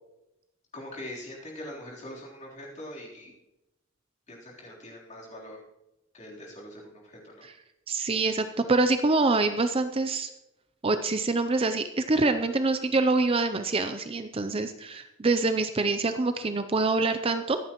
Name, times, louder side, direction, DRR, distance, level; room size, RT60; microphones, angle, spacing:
voice 1, 0.7-3.3 4.3-5.6 6.1-7.5, left 1 dB, 35° left, -4 dB, 3.5 m, -42 dB
voice 2, 7.9-10.3 10.8-17.6, right 3 dB, 25° right, 9 dB, 0.5 m, -25 dB
24.5 x 8.9 x 3.0 m, 0.92 s
head